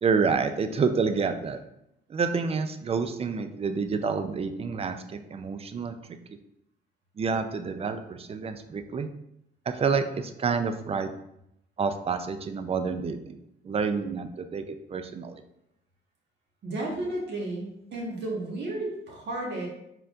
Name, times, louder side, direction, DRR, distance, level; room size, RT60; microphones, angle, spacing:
voice 1, 0.0-1.6 2.1-6.2 7.2-9.1 9.7-11.1 11.8-13.4 13.6-15.4, right 5 dB, 30° right, 9 dB, 0.4 m, -28 dB
voice 2, 16.6-19.7, right 2 dB, 60° right, -2 dB, 1.6 m, -33 dB
4.4 x 3.7 x 2.6 m, 0.79 s
cardioid pair, 90°, 20 cm